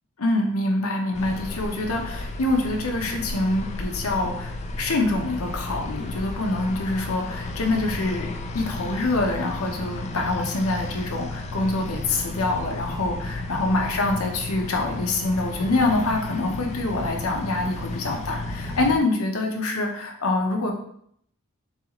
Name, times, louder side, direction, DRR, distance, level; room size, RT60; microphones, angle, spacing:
voice 1, 0.2-20.7, left 2 dB, 80° left, 2 dB, 0.9 m, -25 dB
sound 1, 1.1-19.0, left 2 dB, 30° left, 0.4 m, -33 dB
6.7 x 2.5 x 3.0 m, 0.68 s
head